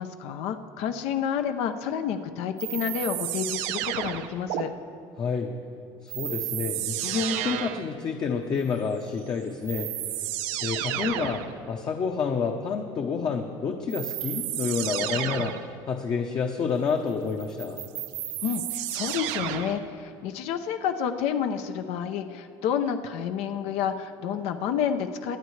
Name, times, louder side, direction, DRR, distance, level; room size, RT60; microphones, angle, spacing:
voice 1, 0.0-4.7 18.4-25.4, left 8 dB, 75° left, 7 dB, 0.7 m, -29 dB
sound 1, 2.6-4.6 6.1-7.9 9.2-9.3 9.7-11.5 13.9-15.7 17.4-19.8, right 13 dB, 85° right, 0.7 m, -31 dB
voice 2, 5.2-5.5 6.0-9.9 10.6-17.8, left 5 dB, 40° left, 3 dB, 0.8 m, -29 dB
23.5 x 9.2 x 3.2 m, 2.4 s
cardioid pair, 120°, 11 cm